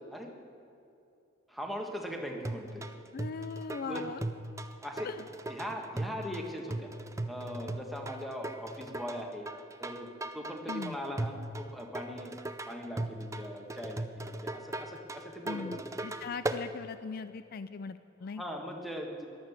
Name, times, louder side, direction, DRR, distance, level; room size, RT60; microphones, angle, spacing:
voice 1, 1.5-2.8 3.8-4.0 4.8-5.1 5.5-6.9 7.3-9.5 9.8-10.1 10.3-12.3 12.7-15.6 18.4-19.3, equal, ahead, 1 dB, 1.6 m, -40 dB
sound 1, 2.4-16.6, right 2 dB, 15° right, 0.6 m, -38 dB
voice 2, 3.1-4.2 5.0-5.2 10.7-11.0 15.4-18.4, left 5 dB, 50° left, 12 dB, 0.4 m, -40 dB
14.0 x 11.0 x 7.3 m, 2.7 s
head